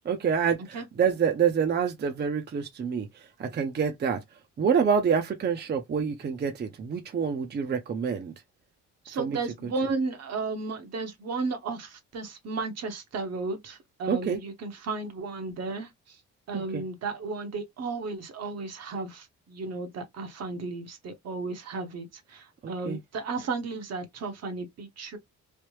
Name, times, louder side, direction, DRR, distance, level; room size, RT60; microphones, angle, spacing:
voice 1, 0.0-4.2 4.6-8.3 9.2-9.4 14.1-14.4 16.5-16.8 22.6-23.0, right 7 dB, 35° right, 0.6 m, -27 dB
voice 2, 9.0-16.2 16.5-25.2, right 3 dB, 60° right, 0.9 m, -34 dB
3.3 x 2.0 x 3.0 m
cardioid pair, 90°, 30 cm